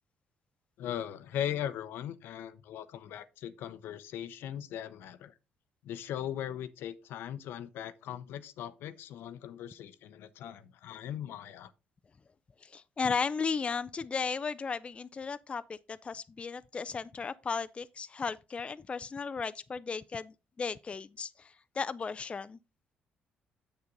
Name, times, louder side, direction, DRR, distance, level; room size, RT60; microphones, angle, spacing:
voice 1, 0.8-5.3 5.8-11.7, left 10 dB, 75° left, 0.7 m, -39 dB
voice 2, 12.6-22.6, left 5 dB, 30° left, 0.3 m, -35 dB
6.9 x 6.7 x 3.9 m
supercardioid pair, 75°, 4 cm